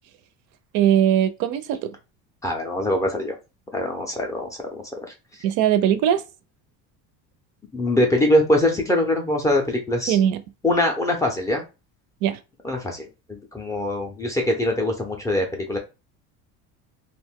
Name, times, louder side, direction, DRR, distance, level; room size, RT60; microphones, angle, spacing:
voice 1, 0.7-1.9 5.4-6.2 10.1-10.4 12.2-12.4, right 10 dB, 60° right, 0.5 m, -20 dB
voice 2, 2.4-3.4 3.7-4.8 7.7-10.2 10.6-11.6 12.6-15.8, left 1 dB, 10° left, 0.4 m, -23 dB
2.5 x 2.1 x 3.4 m
cardioid pair, 160°, 33 cm